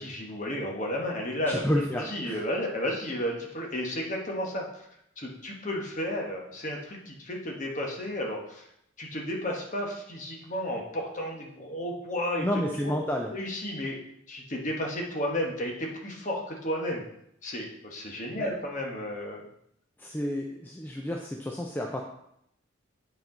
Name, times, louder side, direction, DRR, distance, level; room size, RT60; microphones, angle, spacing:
voice 1, 0.0-4.8 5.2-8.7 9.0-12.5 13.3-14.0 14.3-17.0 17.4-19.4, left 1 dB, 35° left, 0 dB, 1.2 m, -33 dB
voice 2, 1.5-2.4 12.4-13.3 18.4-18.5 20.0-22.0, equal, 10° left, 0 dB, 0.4 m, -30 dB
8.2 x 4.4 x 3.9 m, 0.76 s
head